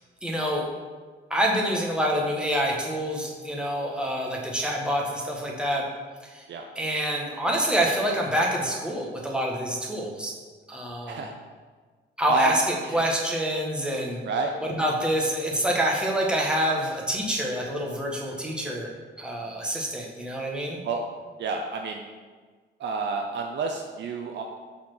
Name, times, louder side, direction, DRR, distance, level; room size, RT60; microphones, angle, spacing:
voice 1, 0.2-0.6 1.3-5.8 6.3-6.4 6.7-10.3 10.7-11.2 12.2-14.2 14.6-18.9 19.2-20.8, equal, 5° right, -2 dB, 1.5 m, -27 dB
voice 2, 12.3-12.6 12.8-13.0 14.3-14.5 18.3-18.4 19.4-19.5 20.8-21.0 21.4-22.0 22.8-24.4, right 4 dB, 65° right, 3 dB, 0.7 m, -29 dB
5.9 x 4.3 x 6.2 m, 1.5 s
cardioid pair, 90°, 20 cm